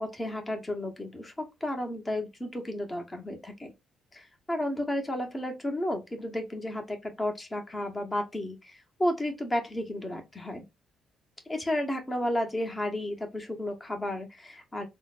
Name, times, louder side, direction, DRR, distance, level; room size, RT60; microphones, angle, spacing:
voice 1, 0.0-3.7 4.1-10.6 11.5-14.9, left 1 dB, 20° left, 0.8 m, -32 dB
3.7 x 2.1 x 2.4 m
cardioid pair, 90°, 0 cm